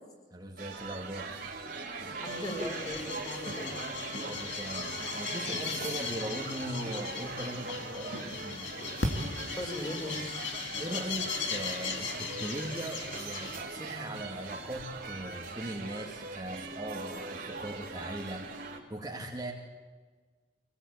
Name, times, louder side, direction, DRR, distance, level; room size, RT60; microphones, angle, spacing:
voice 1, 0.3-1.4 4.2-8.7 10.8-18.5 18.9-19.5, right 1 dB, 20° right, 0 dB, 2.1 m, -39 dB
sound 1, 0.6-18.8, right 4 dB, 50° right, 3.0 m, -41 dB
voice 2, 2.0-3.7 9.5-10.4, equal, 20° left, 1 dB, 4.2 m, -38 dB
sound 2, 2.2-13.6, left 4 dB, 85° left, 2.4 m, -37 dB
sound 3, 3.4-15.3, equal, 55° left, 6.1 m, -51 dB
24.0 x 18.5 x 8.7 m, 1.4 s
head